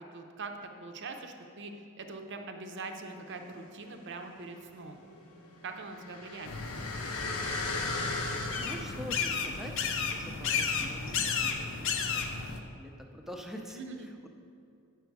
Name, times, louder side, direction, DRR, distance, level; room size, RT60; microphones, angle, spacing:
voice 1, 0.0-5.0 5.6-7.1 13.7-14.1, right 3 dB, 55° right, 5 dB, 0.6 m, -43 dB
sound 1, 3.3-4.1 4.4-11.5 12.0-12.1, left 3 dB, 85° left, 1.0 m, -38 dB
sound 2, 6.4-12.6, left 5 dB, 60° left, 0.6 m, -33 dB
voice 2, 8.6-12.2 12.7-14.3, equal, ahead, 2 dB, 0.5 m, -45 dB
8.1 x 6.0 x 4.6 m, 2.5 s
head